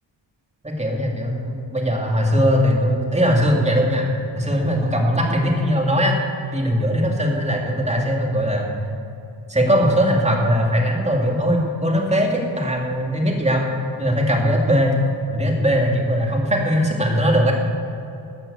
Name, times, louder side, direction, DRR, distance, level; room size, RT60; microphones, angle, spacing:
voice 1, 0.6-4.1 4.4-6.2 6.5-8.7 9.5-13.7 14.0-15.0 15.3-17.5, equal, 15° right, 0 dB, 2.4 m, -20 dB
13.5 x 8.4 x 8.1 m, 2.7 s
wide cardioid pair, 130°, 48 cm